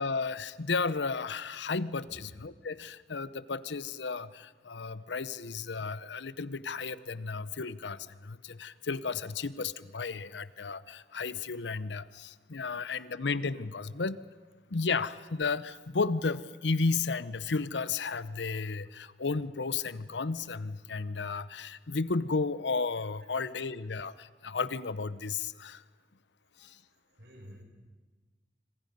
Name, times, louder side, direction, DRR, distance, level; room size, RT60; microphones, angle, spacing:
voice 1, 0.0-14.2 14.7-25.8 26.6-26.8, left 4 dB, 85° left, 16 dB, 0.8 m, -33 dB
voice 2, 27.1-27.6, equal, 65° right, 2 dB, 5.4 m, -52 dB
26.0 x 25.5 x 5.4 m, 1.3 s
head